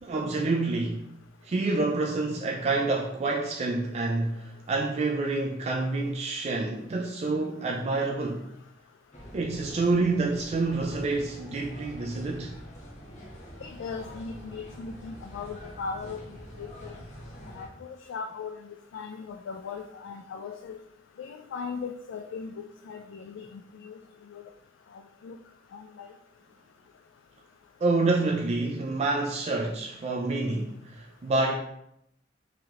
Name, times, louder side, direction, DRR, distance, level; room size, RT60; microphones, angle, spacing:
voice 1, 0.0-1.1 1.4-8.5 9.3-12.5 27.8-31.6, right 3 dB, 35° right, 0 dB, 0.3 m, -28 dB
sound 1, 9.1-17.7, equal, 40° left, 0.8 m, -45 dB
voice 2, 13.6-16.2 16.6-17.0 17.5-20.8 21.2-24.0 24.3-24.4 24.9-25.4 25.7-26.1, left 5 dB, 80° left, 5 dB, 0.3 m, -39 dB
4.0 x 3.0 x 2.9 m, 0.77 s
head